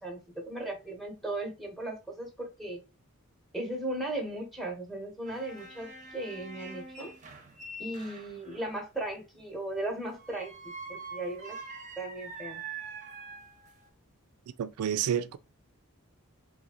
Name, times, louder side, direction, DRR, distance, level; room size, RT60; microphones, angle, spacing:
voice 1, 0.0-2.8 3.5-7.1 7.8-11.6 12.0-12.6, right 1 dB, ahead, 1.0 m, -37 dB
sound 1, 5.3-8.7 10.2-13.9, right 3 dB, 35° right, 0.6 m, -44 dB
voice 2, 14.6-15.4, right 9 dB, 85° right, 0.3 m, -29 dB
3.9 x 2.6 x 2.9 m
head